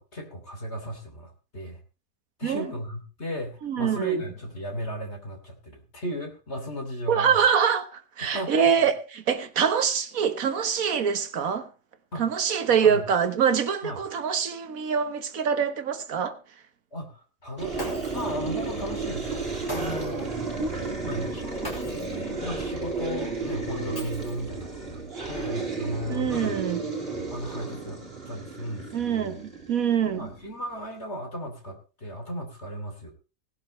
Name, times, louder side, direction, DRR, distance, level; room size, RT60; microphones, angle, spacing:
voice 1, 0.0-1.8 2.4-7.4 8.2-8.9 12.1-12.2 12.8-13.1 13.8-14.0 16.9-19.4 19.7-20.6 21.0-26.6 27.3-29.4 30.0-33.1, equal, 40° left, 3.3 m, -35 dB
voice 2, 3.6-4.1 7.1-7.9 8.2-11.7 12.2-16.3 20.6-20.9 26.1-26.8 28.9-30.3, right 7 dB, 60° right, 1.7 m, -24 dB
sound 1, 17.6-30.5, right 4 dB, 35° right, 2.8 m, -33 dB
Shatter, 17.8-18.4 19.7-20.2 21.6-22.2 23.9-24.6, right 1 dB, 15° left, 5.2 m, -39 dB
18.5 x 11.5 x 3.2 m
omnidirectional pair, 1.7 m